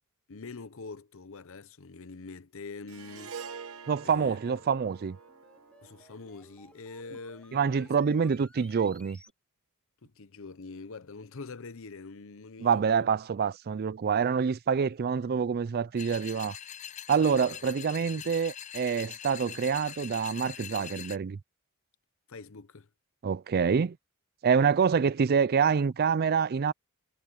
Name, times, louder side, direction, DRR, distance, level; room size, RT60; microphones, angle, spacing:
voice 1, 0.3-3.4 4.0-4.6 5.8-8.2 10.0-13.1 17.5-17.6 22.3-22.9, left 4 dB, 65° left, 0.8 m, -44 dB
Harp, 2.9-7.3, right 6 dB, 70° right, 1.1 m, -47 dB
voice 2, 3.9-5.2 7.5-9.2 12.6-16.6 17.1-21.4 23.2-24.0 24.4-26.7, right 6 dB, 45° right, 0.4 m, -26 dB
sound 1, 4.2-9.3, left 1 dB, 5° left, 1.8 m, -58 dB
sound 2, 16.0-21.2, left 10 dB, 35° left, 0.4 m, -43 dB
head